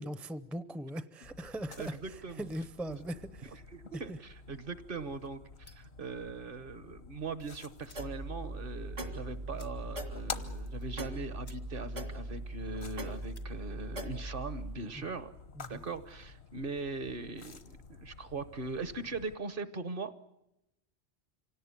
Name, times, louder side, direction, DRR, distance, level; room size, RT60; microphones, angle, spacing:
voice 1, 0.0-3.6 3.9-4.2 15.0-15.1 15.6-15.8, equal, ahead, 13 dB, 0.6 m, -40 dB
sound 1, 1.2-19.3, left 5 dB, 70° left, 1.3 m, -50 dB
voice 2, 1.8-2.5 2.9-3.0 3.7-15.4 15.7-20.2, right 3 dB, 55° right, 13 dB, 1.2 m, -40 dB
sound 2, 5.6-6.0 7.3-7.4 7.8-8.2 8.5-8.6 8.9-9.0 9.5-10.1 10.5-10.6 11.1-11.2 11.4-11.7 12.0-12.4 13.1-13.5, left 4 dB, 85° left, 2.2 m, -60 dB
sound 3, 8.0-14.8, right 1 dB, 70° right, 2.6 m, -40 dB
26.0 x 17.5 x 9.6 m, 0.91 s
omnidirectional pair, 1.1 m